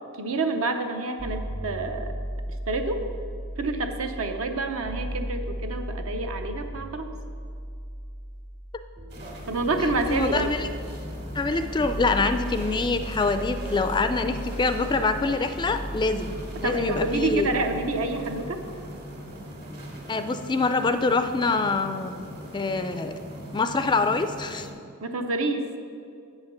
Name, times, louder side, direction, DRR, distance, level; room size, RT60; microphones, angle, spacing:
voice 1, 0.2-2.1 2.7-3.0 3.6-7.1 9.5-10.5 16.6-18.6 25.0-25.7, right 3 dB, 65° right, 6 dB, 0.8 m, -28 dB
sound 1, 1.2-19.1, equal, 20° right, 0.7 m, -36 dB
sound 2, 9.1-24.7, equal, 50° right, 2.0 m, -40 dB
voice 2, 10.1-10.7 11.3-17.6 20.1-22.1 22.5-23.1 23.5-24.7, left 3 dB, 20° left, 9 dB, 0.3 m, -25 dB
8.1 x 5.7 x 6.9 m, 2.4 s
head